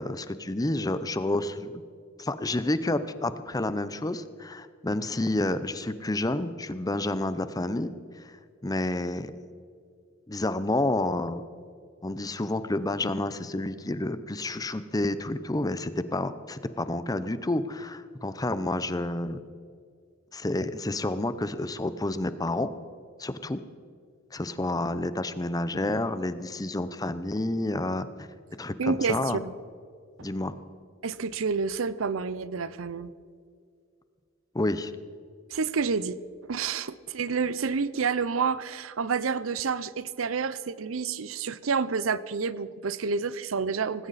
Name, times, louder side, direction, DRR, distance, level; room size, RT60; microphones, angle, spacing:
voice 1, 0.0-1.8 2.2-7.9 8.2-8.4 8.6-9.3 10.3-11.4 12.0-19.4 20.3-22.7 23.2-23.6 24.3-28.3 28.6-29.4 30.2-30.6 34.5-34.9, left 2 dB, 20° left, 13 dB, 0.7 m, -29 dB
voice 2, 28.8-29.5 30.2-30.3 31.0-33.1 35.5-36.2 36.5-44.1, right 5 dB, 80° right, 16 dB, 0.6 m, -29 dB
18.5 x 17.0 x 4.2 m, 2.2 s
head